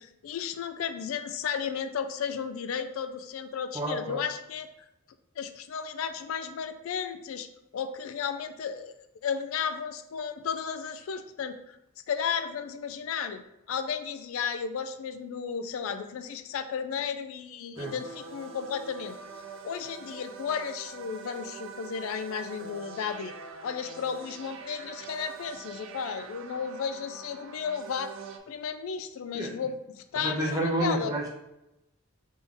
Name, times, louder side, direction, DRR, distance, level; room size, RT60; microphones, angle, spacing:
voice 1, 0.0-4.7 5.4-7.5 7.7-11.8 12.1-19.2 19.6-23.3 23.6-28.1 28.5-31.1, left 7 dB, 75° left, 9 dB, 0.3 m, -34 dB
voice 2, 3.7-4.2 17.8-17.9 29.3-29.5 30.2-31.3, right 1 dB, 15° right, -3 dB, 0.8 m, -29 dB
sound 1, 17.8-28.4, right 5 dB, 65° right, 0.5 m, -44 dB
3.9 x 3.6 x 3.4 m, 0.90 s
head